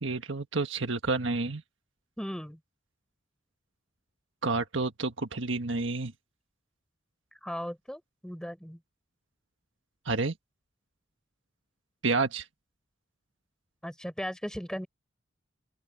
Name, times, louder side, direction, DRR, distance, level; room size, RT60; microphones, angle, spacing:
voice 1, 0.0-1.6 4.4-6.1 10.0-10.3 12.0-12.4, right 3 dB, 75° right, 1.6 m, -29 dB
voice 2, 2.2-2.6 7.4-8.8 13.8-14.9, equal, 5° left, 4.5 m, -37 dB
open air
head